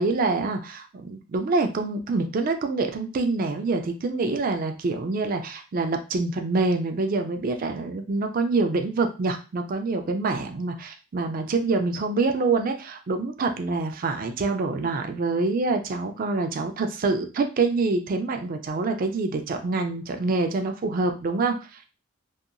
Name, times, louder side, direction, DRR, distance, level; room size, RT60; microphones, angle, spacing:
voice 1, 0.0-21.5, right 3 dB, 40° right, 6 dB, 0.3 m, -26 dB
2.7 x 2.2 x 2.5 m, 0.32 s
head